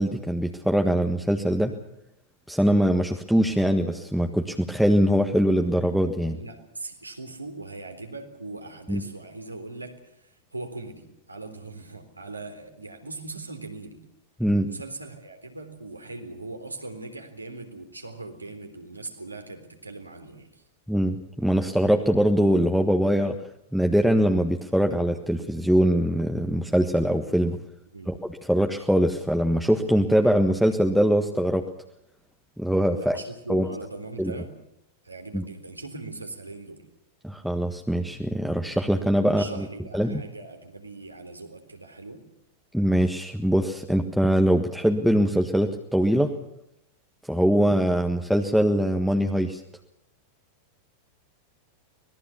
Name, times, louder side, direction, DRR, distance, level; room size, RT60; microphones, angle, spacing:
voice 1, 0.0-1.7 2.5-6.4 8.9-9.0 14.4-14.7 20.9-23.4 23.7-27.6 28.1-28.2 28.5-31.6 32.6-33.2 33.5-33.7 34.2-34.3 35.3-35.4 37.2-39.6 39.9-40.2 42.7-46.3 47.3-49.6, equal, ahead, 3 dB, 1.5 m, -22 dB
voice 2, 6.3-14.0 14.7-20.6 27.9-28.1 32.9-34.5 35.0-36.8 39.3-42.2, right 2 dB, 85° right, 4 dB, 3.7 m, -40 dB
25.0 x 19.5 x 7.2 m, 0.80 s
figure-of-eight pair, 90°, 0 cm